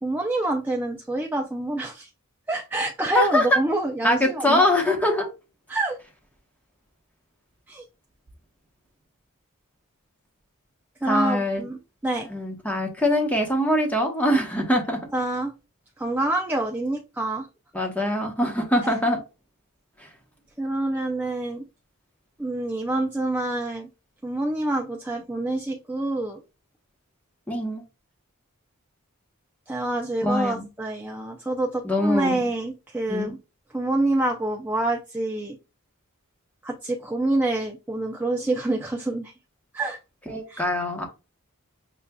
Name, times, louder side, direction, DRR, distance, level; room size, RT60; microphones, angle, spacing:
voice 1, 0.0-2.1 2.5-4.7 5.7-6.0 7.7-7.8 11.0-12.3 15.1-15.5 16.0-17.5 18.8-18.9 20.6-21.6 22.4-23.9 24.2-26.4 29.7-33.4 33.7-35.6 36.6-39.3 39.7-40.0 40.5-40.6, right 2 dB, 10° right, 0.4 m, -27 dB
voice 2, 3.1-3.6 4.0-5.3 11.1-11.6 12.3-15.0 17.7-19.2 27.5-27.8 30.2-30.7 31.8-32.4 33.1-33.3 40.3-41.0, left 1 dB, 5° left, 1.0 m, -23 dB
6.7 x 2.4 x 2.2 m
head